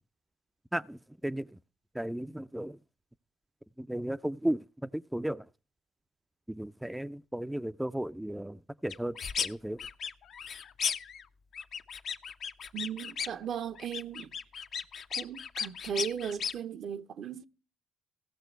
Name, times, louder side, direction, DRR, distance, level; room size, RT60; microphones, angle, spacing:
voice 1, 2.0-2.8 3.8-4.6 4.9-5.4 6.5-9.8, right 1 dB, 5° right, 0.4 m, -34 dB
sound 1, 8.9-9.5 9.8-11.2 11.5-13.4 13.8-16.5, left 7 dB, 60° left, 0.8 m, -35 dB
voice 2, 12.7-14.3 15.2-17.4, right 8 dB, 65° right, 0.7 m, -37 dB
16.5 x 6.3 x 4.5 m
hypercardioid pair, 55°, 0 cm